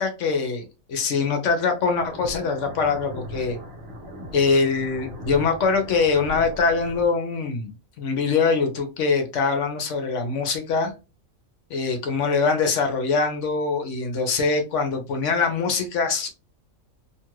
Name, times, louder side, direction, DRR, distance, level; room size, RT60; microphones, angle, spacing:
voice 1, 0.0-3.6 4.3-10.9 11.7-16.3, left 4 dB, 65° left, 5 dB, 0.9 m, -23 dB
sound 1, 1.9-7.1, equal, 55° right, 1.1 m, -39 dB
2.8 x 2.4 x 3.0 m, 0.29 s
omnidirectional pair, 1.5 m